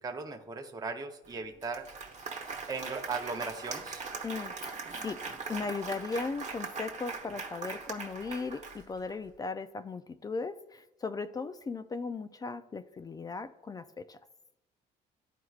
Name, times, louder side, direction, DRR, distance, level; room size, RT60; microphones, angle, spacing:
voice 1, 0.0-1.9 2.7-4.0, right 4 dB, 20° right, 4 dB, 0.7 m, -37 dB
Applause, 1.2-1.3 1.6-9.1, right 4 dB, 45° right, 1.1 m, -41 dB
voice 2, 4.2-5.2 5.5-14.2, left 4 dB, 20° left, 11 dB, 0.3 m, -37 dB
12.5 x 4.5 x 2.4 m, 0.92 s
cardioid pair, 110°, 17 cm